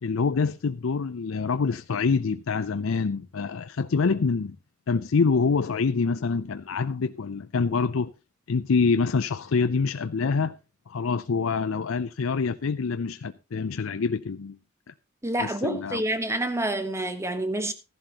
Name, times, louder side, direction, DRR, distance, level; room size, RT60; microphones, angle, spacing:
voice 1, 0.0-4.6 4.9-8.1 8.5-10.6 10.9-14.6 14.9-15.0 15.4-16.0, left 4 dB, 75° left, 0.5 m, -26 dB
voice 2, 15.2-17.7, right 1 dB, 15° right, 1.2 m, -28 dB
15.0 x 11.5 x 2.9 m
head